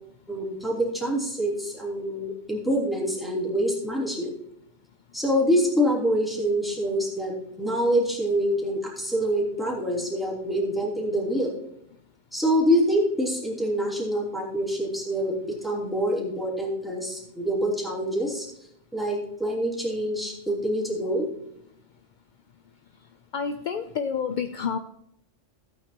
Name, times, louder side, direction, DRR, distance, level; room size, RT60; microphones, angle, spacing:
voice 1, 0.3-4.3 5.1-11.5 12.3-18.5 18.9-21.3, equal, ahead, -4 dB, 3.1 m, -26 dB
voice 2, 23.3-24.8, left 6 dB, 55° left, 8 dB, 0.5 m, -29 dB
15.5 x 8.7 x 2.9 m, 0.76 s
omnidirectional pair, 1.3 m